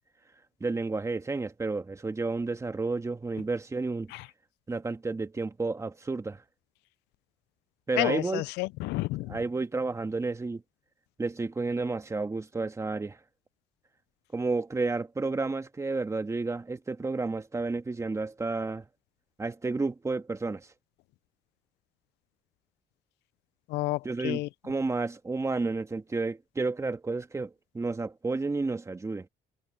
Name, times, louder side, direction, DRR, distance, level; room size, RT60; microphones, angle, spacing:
voice 1, 0.6-4.1 4.7-6.4 7.9-8.4 9.3-10.6 11.2-13.2 14.3-18.8 19.4-20.7 24.0-29.3, right 3 dB, 15° right, 1.7 m, -31 dB
voice 2, 8.0-9.4 23.7-24.5, left 20 dB, 85° left, 0.4 m, -30 dB
cardioid pair, 110°, 17 cm